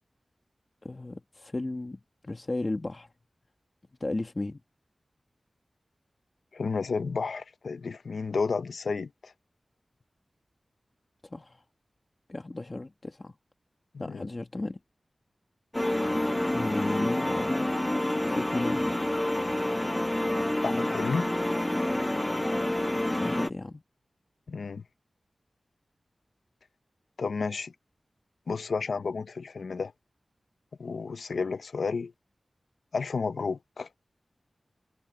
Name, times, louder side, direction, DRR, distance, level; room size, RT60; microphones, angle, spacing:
voice 1, 0.8-3.1 4.0-4.6 11.3-11.6 12.3-13.3 14.0-14.8 16.5-17.7 18.0-19.0 22.5-23.8, left 2 dB, 35° left, 1.5 m, -35 dB
voice 2, 6.5-9.3 13.9-14.3 20.6-21.3 24.5-24.8 27.2-27.7 28.5-29.9 30.8-32.1 32.9-33.9, left 4 dB, 85° left, 0.7 m, -31 dB
sound 1, 15.7-23.5, left 1 dB, 15° left, 0.5 m, -28 dB
wide cardioid pair, 70°, 0 cm